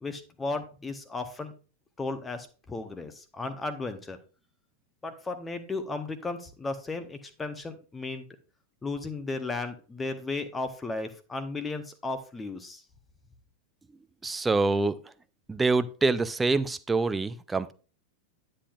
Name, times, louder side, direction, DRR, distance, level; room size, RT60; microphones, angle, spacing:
voice 1, 0.0-1.5 2.0-4.2 5.0-8.3 8.8-12.8, left 3 dB, 15° left, 0.8 m, -35 dB
voice 2, 14.2-15.0 15.5-17.7, right 3 dB, 10° right, 0.5 m, -25 dB
9.8 x 7.6 x 2.4 m
figure-of-eight pair, 90°, 0 cm